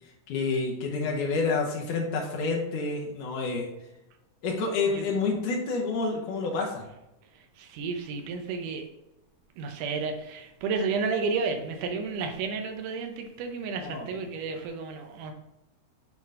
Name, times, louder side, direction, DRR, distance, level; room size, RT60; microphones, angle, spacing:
voice 1, 0.3-3.7 4.4-6.8 13.8-14.1, left 4 dB, 80° left, -1 dB, 2.5 m, -28 dB
voice 2, 7.6-8.9 9.6-15.3, right 4 dB, 80° right, 5 dB, 2.3 m, -32 dB
9.0 x 3.9 x 3.7 m, 0.92 s
omnidirectional pair, 3.6 m